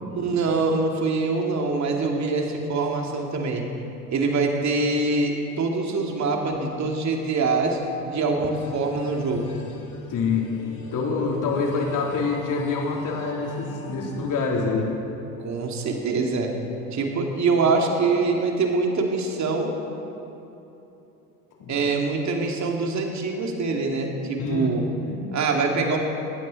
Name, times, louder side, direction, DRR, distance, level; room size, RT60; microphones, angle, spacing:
voice 1, 0.2-3.6 4.1-9.5 15.4-16.5 16.9-19.7 21.7-24.8 25.3-26.0, right 3 dB, 35° right, 1 dB, 2.8 m, -24 dB
sound 1, 8.5-15.5, left 3 dB, 70° left, 2.4 m, -43 dB
voice 2, 10.1-10.4 10.9-14.9 21.6-21.7 24.4-25.2, left 4 dB, 40° left, -1 dB, 3.6 m, -26 dB
20.0 x 16.5 x 4.2 m, 3.0 s
figure-of-eight pair, 70°, 47 cm